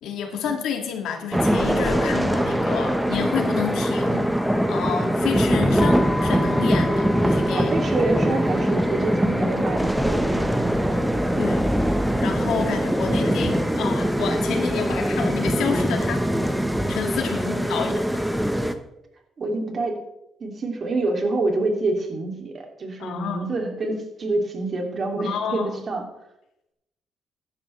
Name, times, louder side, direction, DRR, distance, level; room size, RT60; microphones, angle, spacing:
voice 1, 0.0-7.7 11.4-16.2 16.9-18.2 23.0-23.5 25.2-25.8, left 7 dB, 85° left, 3 dB, 2.2 m, -30 dB
sound 1, 1.3-18.7, equal, 5° right, 1.1 m, -22 dB
sound 2, 5.8-12.8, left 2 dB, 20° left, 4.1 m, -37 dB
voice 2, 7.5-11.0 17.5-18.0 19.4-20.0 20.4-26.0, right 2 dB, 45° right, 2 dB, 2.7 m, -27 dB
15.0 x 11.5 x 3.3 m, 0.85 s
cardioid pair, 90°, 0 cm